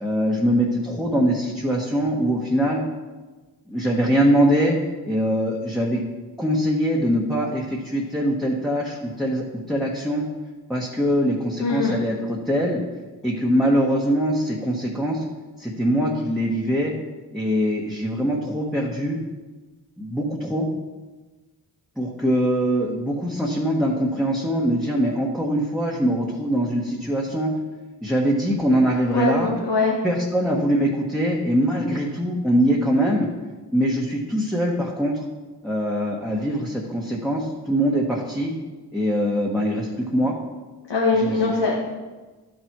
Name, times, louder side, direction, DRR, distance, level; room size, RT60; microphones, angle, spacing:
voice 1, 0.0-2.8 3.7-4.8 5.0-6.0 6.4-10.3 10.7-12.8 13.2-15.2 15.6-16.9 17.3-19.2 20.0-20.7 22.0-27.5 28.0-29.5 30.0-33.3 33.7-35.2 35.6-38.5 38.9-40.3 41.1-41.6, equal, ahead, -4 dB, 1.3 m, -22 dB
voice 2, 11.6-12.0 29.1-30.0 40.9-41.7, left 3 dB, 80° left, -2 dB, 1.3 m, -22 dB
12.0 x 4.5 x 4.6 m, 1.3 s
cardioid pair, 55°, 42 cm